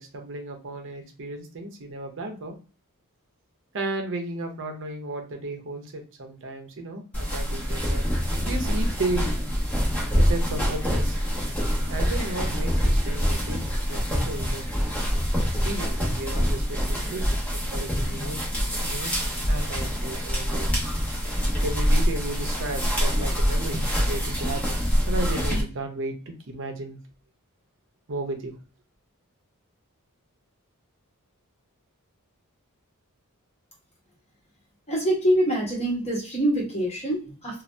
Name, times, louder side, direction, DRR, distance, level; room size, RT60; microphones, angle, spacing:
voice 1, 0.0-2.5 3.7-9.3 10.2-11.2 11.9-14.6 15.6-18.4 18.9-20.7 21.6-24.8 25.1-27.0 28.1-28.5, right 2 dB, 60° right, 4 dB, 0.7 m, -34 dB
sound 1, 7.1-25.6, equal, 5° left, 0.8 m, -25 dB
voice 2, 34.9-37.6, right 1 dB, 30° left, -2 dB, 1.2 m, -25 dB
2.6 x 2.0 x 3.2 m, 0.36 s
head